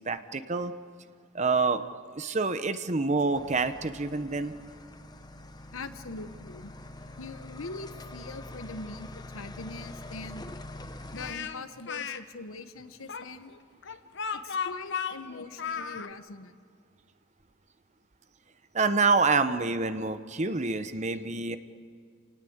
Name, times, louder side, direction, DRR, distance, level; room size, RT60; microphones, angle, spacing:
voice 1, 0.1-0.7 1.3-1.8 2.2-4.5 18.7-21.6, right 4 dB, 35° right, 11 dB, 0.9 m, -27 dB
sound 1, 3.3-11.3, left 2 dB, 20° left, 0.9 m, -45 dB
voice 2, 5.7-6.7 7.2-10.4 11.1-13.5 14.3-16.5, left 3 dB, 80° left, 10 dB, 1.2 m, -42 dB
Speech, 11.1-12.2 13.1-16.1, left 6 dB, 55° left, 0.9 m, -34 dB
28.0 x 19.0 x 8.1 m, 2.1 s
head